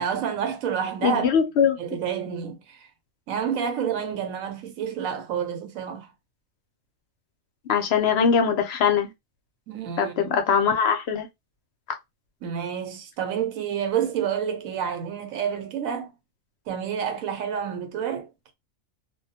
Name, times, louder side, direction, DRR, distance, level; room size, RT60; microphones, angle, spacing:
voice 1, 0.0-1.3 1.8-2.9 3.3-6.1 9.7-10.3 12.4-16.1 16.7-18.3, right 8 dB, 85° right, 1.1 m, -29 dB
voice 2, 1.0-1.8 7.7-9.1 10.0-11.3, left 7 dB, 65° left, 0.7 m, -21 dB
2.3 x 2.1 x 2.7 m
omnidirectional pair, 1.4 m